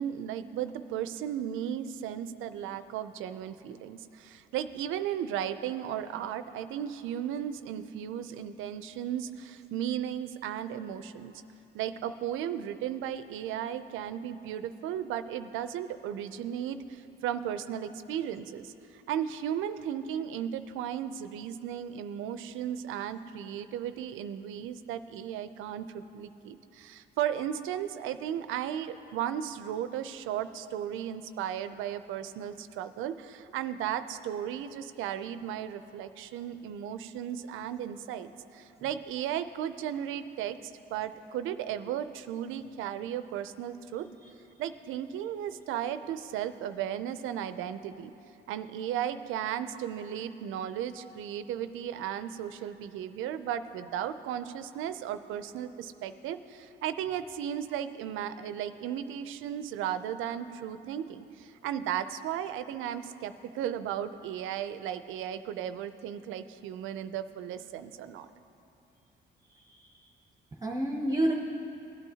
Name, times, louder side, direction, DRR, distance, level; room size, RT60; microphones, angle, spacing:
voice 1, 0.0-11.3 11.7-44.1 44.6-48.1 48.5-68.3, right 10 dB, 90° right, 11 dB, 0.4 m, -35 dB
voice 2, 69.5-70.1 70.6-71.3, right 1 dB, 15° right, 0 dB, 0.7 m, -30 dB
17.0 x 9.0 x 2.8 m, 2.8 s
cardioid pair, 90°, 20 cm